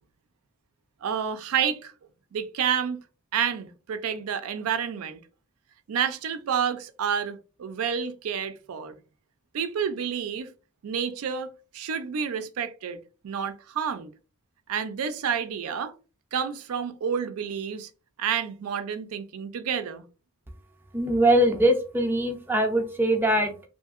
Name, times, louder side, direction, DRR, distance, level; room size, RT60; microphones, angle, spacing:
voice 1, 1.0-1.9 2.3-3.0 3.3-5.2 5.9-9.0 9.5-10.5 10.8-14.1 14.7-15.9 16.3-17.9 18.2-20.0, right 7 dB, 85° right, 0.4 m, -29 dB
voice 2, 20.9-23.5, right 1 dB, 10° right, 0.4 m, -22 dB
2.7 x 2.6 x 2.4 m
head